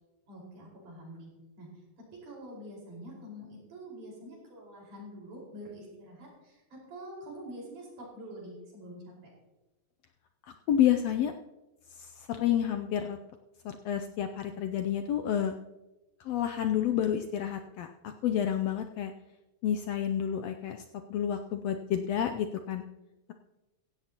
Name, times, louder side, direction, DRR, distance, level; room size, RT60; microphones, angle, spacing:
voice 1, 0.3-1.3 1.6-1.7 2.2-6.6 6.9-9.0, equal, 80° right, -4 dB, 6.5 m, -46 dB
voice 2, 10.7-11.3 12.0-13.2 13.6-15.5 16.2-19.1 19.6-20.8 21.1-22.8, left 10 dB, 75° left, 6 dB, 1.5 m, -29 dB
16.5 x 16.0 x 2.9 m, 1.1 s
omnidirectional pair, 3.5 m